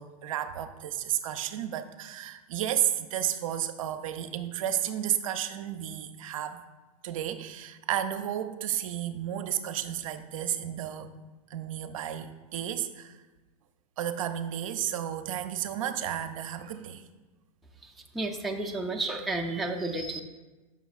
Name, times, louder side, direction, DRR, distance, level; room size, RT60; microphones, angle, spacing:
voice 1, 0.0-6.6 7.0-11.1 11.5-13.1 14.0-17.0, right 11 dB, 65° right, 9 dB, 0.5 m, -32 dB
voice 2, 18.1-20.2, right 2 dB, ahead, -1 dB, 0.4 m, -31 dB
7.0 x 5.8 x 2.4 m, 1.2 s
hypercardioid pair, 130°, 19 cm